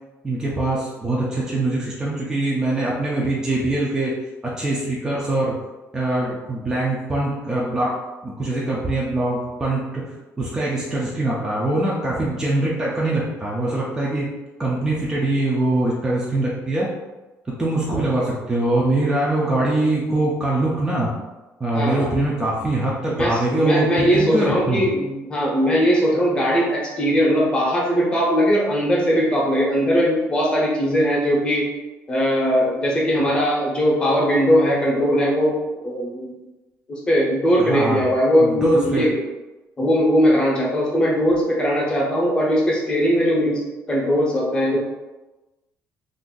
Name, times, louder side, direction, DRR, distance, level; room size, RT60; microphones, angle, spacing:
voice 1, 0.2-4.1 4.6-5.5 5.9-8.0 8.2-10.0 10.4-14.3 14.6-16.9 17.6-21.1 21.6-24.8 37.6-38.0 38.4-39.1, right 2 dB, 10° right, -5 dB, 0.4 m, -23 dB
voice 2, 21.7-22.1 23.2-31.7 32.1-36.4 36.9-39.1 39.8-44.8, equal, 15° left, -4 dB, 0.7 m, -20 dB
2.5 x 2.5 x 3.7 m, 1.1 s
cardioid pair, 175°, 5 cm